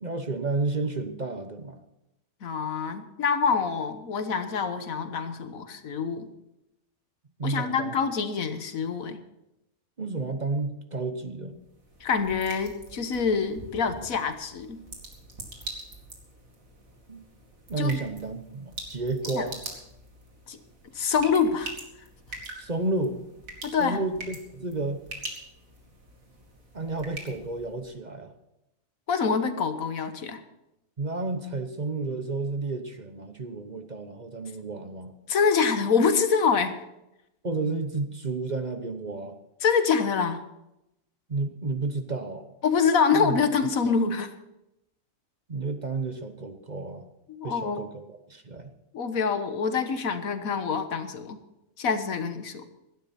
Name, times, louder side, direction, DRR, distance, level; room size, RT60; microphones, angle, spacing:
voice 1, 0.0-1.8 7.4-8.0 10.0-11.6 17.1-17.2 17.7-19.6 22.6-23.3 23.8-25.0 26.7-28.3 31.0-35.1 37.4-39.3 41.3-42.5 43.1-43.4 45.5-47.1 47.4-48.7, right 3 dB, 35° right, 7 dB, 1.0 m, -31 dB
voice 2, 2.4-6.3 7.4-9.2 12.0-14.8 17.8-17.9 19.3-19.5 20.5-20.6 21.0-21.7 23.6-24.0 29.1-30.4 35.3-36.8 39.6-40.4 42.6-44.3 47.3-47.8 48.9-51.4 51.8-52.7, left 5 dB, 90° left, 9 dB, 1.6 m, -25 dB
sound 1, 11.5-28.0, right 2 dB, 80° right, 2.9 m, -44 dB
17.0 x 12.5 x 4.3 m, 0.90 s
omnidirectional pair, 1.4 m